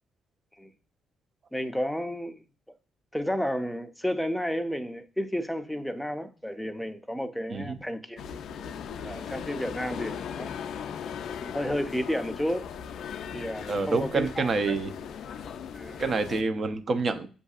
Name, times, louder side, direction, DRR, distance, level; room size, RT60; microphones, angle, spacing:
voice 1, 1.5-2.4 3.1-8.2 9.0-10.5 11.4-12.7 13.3-14.7 15.7-16.0, equal, ahead, 0.5 m, -32 dB
sound 1, 8.2-16.4, left 7 dB, 70° left, 0.3 m, -38 dB
voice 2, 13.7-14.9 16.0-17.3, right 3 dB, 45° right, 0.6 m, -27 dB
7.0 x 2.6 x 2.4 m
cardioid pair, 90°, 0 cm